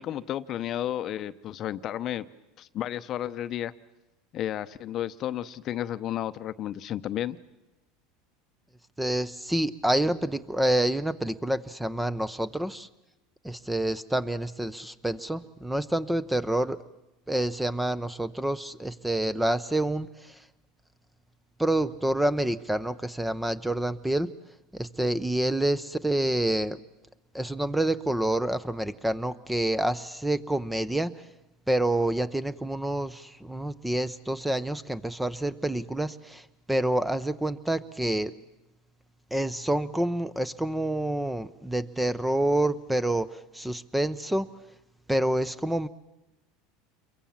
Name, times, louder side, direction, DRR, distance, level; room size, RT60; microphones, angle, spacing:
voice 1, 0.0-2.3 2.6-3.7 4.3-7.4, left 12 dB, 45° left, 13 dB, 0.8 m, -32 dB
voice 2, 9.0-12.9 13.4-16.8 17.3-20.4 21.6-24.3 24.7-26.8 27.3-31.1 31.7-38.3 39.3-44.5 45.1-45.9, right 1 dB, 5° right, 15 dB, 0.8 m, -28 dB
28.0 x 23.0 x 7.3 m, 0.99 s
supercardioid pair, 115°, 0 cm